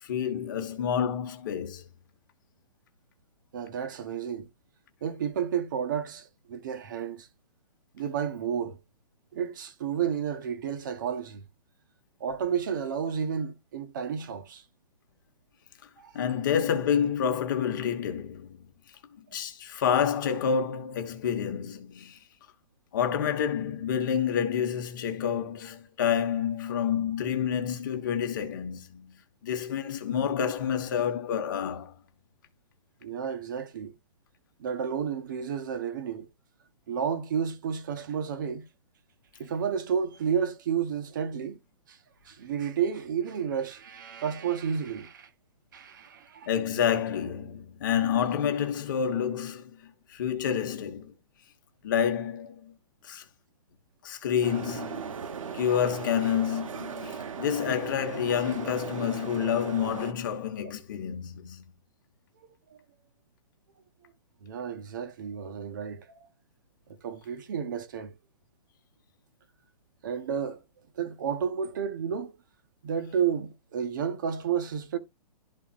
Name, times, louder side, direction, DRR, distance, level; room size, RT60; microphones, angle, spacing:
voice 1, 0.0-1.9 16.1-18.7 19.2-22.2 22.9-31.9 46.5-51.1 51.8-52.7 53.0-53.2 54.0-55.2 55.5-61.7, left 8 dB, 30° left, 1.2 m, -29 dB
voice 2, 3.5-4.5 5.0-7.3 7.9-8.8 9.3-11.4 12.2-14.6 16.0-16.1 33.0-33.9 34.6-36.3 36.9-38.7 39.4-41.6 41.9-42.0 42.2-45.3 45.7-46.5 62.7-62.8 64.4-66.3 66.9-68.1 70.0-70.6 71.0-72.3 72.8-75.0, right 7 dB, 30° right, 0.9 m, -31 dB
sound 1, 54.4-60.1, right 6 dB, 55° right, 1.0 m, -38 dB
12.5 x 4.2 x 2.4 m
hypercardioid pair, 175°, 20 cm